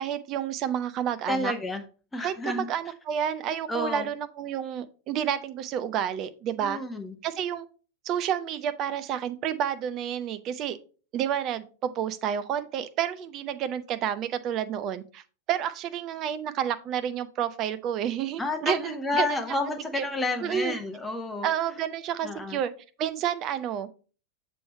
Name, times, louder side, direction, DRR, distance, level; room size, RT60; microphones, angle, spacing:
voice 1, 0.0-1.5 2.2-6.8 7.2-7.7 8.0-10.8 11.1-19.4 19.9-20.1 20.4-20.7 21.4-22.7 23.0-23.9, right 9 dB, 35° right, 0.5 m, -30 dB
voice 2, 1.3-1.8 2.1-2.7 3.7-4.1 6.6-7.2 18.4-21.5 22.2-22.6, left 2 dB, 10° left, 0.9 m, -30 dB
7.1 x 3.2 x 4.3 m
figure-of-eight pair, 90°, 0 cm